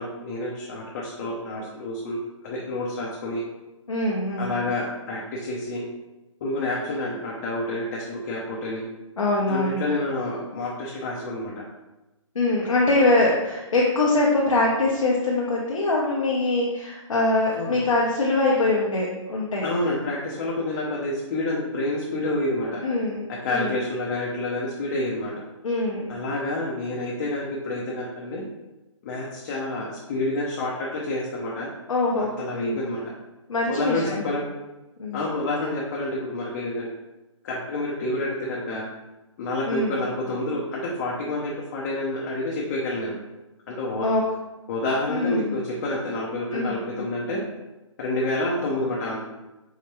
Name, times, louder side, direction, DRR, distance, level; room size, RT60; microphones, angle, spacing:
voice 1, 0.0-2.2 2.4-3.4 4.4-5.8 6.4-8.8 9.5-11.6 17.6-17.8 19.6-22.8 23.3-25.3 26.1-28.4 29.0-31.7 32.2-33.0 33.7-34.4 35.1-36.9 37.4-38.9 39.4-43.1 43.7-44.1 44.7-47.4 48.0-49.2, left 2 dB, 35° left, -4 dB, 0.5 m, -28 dB
voice 2, 3.9-4.5 9.2-9.8 12.3-19.7 22.8-23.8 25.6-26.1 31.9-32.8 33.5-34.3 35.0-35.3 39.7-40.0 44.0-44.2 45.1-45.6 46.5-47.1, left 2 dB, 80° left, -4 dB, 0.8 m, -23 dB
4.7 x 2.2 x 2.9 m, 1.1 s
hypercardioid pair, 150°, 17 cm